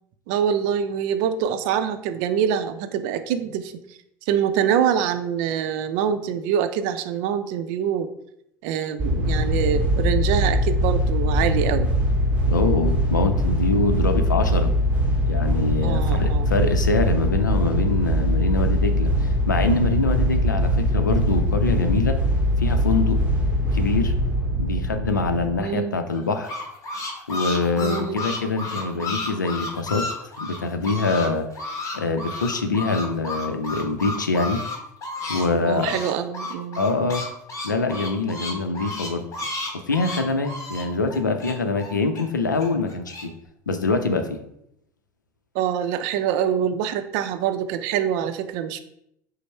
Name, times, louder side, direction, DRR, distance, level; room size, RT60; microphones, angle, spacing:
voice 1, 0.3-3.7 4.3-8.1 8.6-11.9 15.8-16.5 25.6-26.0 27.8-28.2 35.6-36.9 45.5-48.8, right 8 dB, 60° right, 9 dB, 0.5 m, -25 dB
Deep Slow Propeller, 9.0-25.5, equal, 15° right, 0.9 m, -22 dB
voice 2, 12.5-14.7 15.2-22.2 22.6-23.2 23.7-24.1 24.5-26.5 27.3-30.1 30.4-31.5 31.9-34.6 35.3-36.0 36.8-37.2 37.6-39.3 39.7-43.3 43.7-44.4, left 3 dB, 90° left, 7 dB, 0.5 m, -24 dB
sound 1, 26.1-31.3 31.5-35.5 35.7-42.2 42.6-43.2, left 2 dB, 35° left, 1.2 m, -32 dB
5.2 x 2.0 x 4.4 m, 0.76 s
figure-of-eight pair, 75°, 10 cm